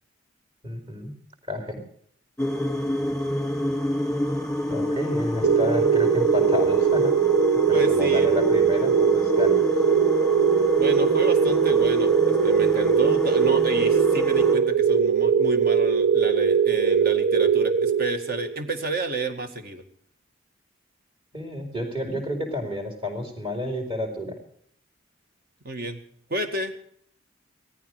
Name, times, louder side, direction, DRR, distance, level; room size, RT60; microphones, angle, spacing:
voice 1, 0.6-1.1 1.5-1.8 4.7-7.1 7.7-9.6 21.3-24.4, left 1 dB, 30° right, 3 dB, 4.8 m, -30 dB
sound 1, 2.4-14.6, left 1 dB, 5° left, 2.5 m, -28 dB
sound 2, 5.4-18.6, right 7 dB, 85° right, 0.9 m, -21 dB
voice 2, 7.7-8.3 10.8-19.8 25.6-26.0 26.3-26.7, right 2 dB, 50° right, 6 dB, 2.0 m, -31 dB
18.0 x 14.5 x 4.9 m, 0.65 s
head